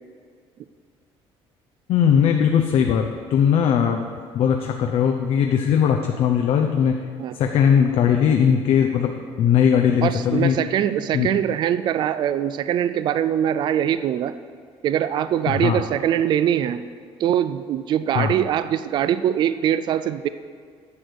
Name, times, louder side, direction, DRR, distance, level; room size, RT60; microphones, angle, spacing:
voice 1, 1.9-4.1 4.3-7.0 7.4-10.6 11.1-11.3 15.6-15.8 18.1-18.3, left 8 dB, 55° left, 4 dB, 0.6 m, -19 dB
voice 2, 10.0-14.3 14.8-16.8 17.2-20.3, right 10 dB, 45° right, 13 dB, 0.3 m, -22 dB
9.8 x 6.3 x 6.8 m, 2.1 s
cardioid pair, 160°, 11 cm